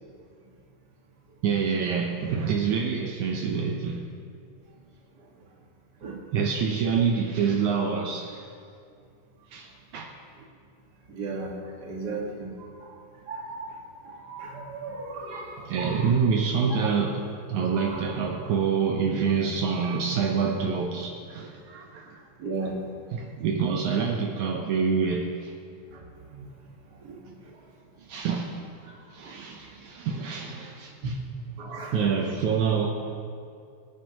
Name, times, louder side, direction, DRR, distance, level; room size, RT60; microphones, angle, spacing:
voice 1, 1.4-4.1 6.3-8.5 9.5-10.1 15.6-22.2 22.6-22.7 23.1-25.5 28.1-31.2 31.9-32.9, right 6 dB, 75° right, 1 dB, 2.1 m, -27 dB
voice 2, 11.1-11.5 11.8-12.9 13.3-13.8 14.1-16.1 17.8-18.1 21.7-21.8 22.4-22.7 26.4-26.5 27.0-27.2 31.6-32.0, right 3 dB, 40° right, -2 dB, 1.8 m, -36 dB
25.0 x 9.8 x 3.0 m, 2.3 s
omnidirectional pair, 3.8 m